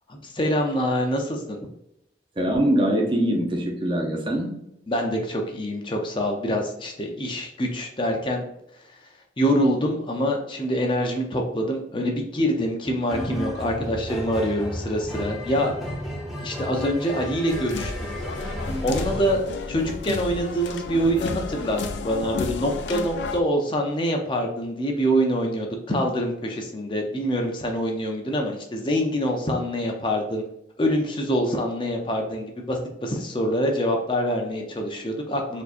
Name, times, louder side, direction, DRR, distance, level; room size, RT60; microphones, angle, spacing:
voice 1, 0.1-1.6 4.9-8.4 8.9-9.0 9.4-15.7 16.4-17.9 18.4-18.5 18.8-30.4 30.8-35.6, equal, 30° left, 2 dB, 0.5 m, -25 dB
voice 2, 2.4-4.6, right 1 dB, 25° right, 1 dB, 0.6 m, -23 dB
sound 1, 13.1-19.4, equal, ahead, 0.8 m, -33 dB
sound 2, 17.5-23.4, left 3 dB, 85° left, 0.4 m, -32 dB
4.3 x 2.8 x 2.5 m, 0.80 s
head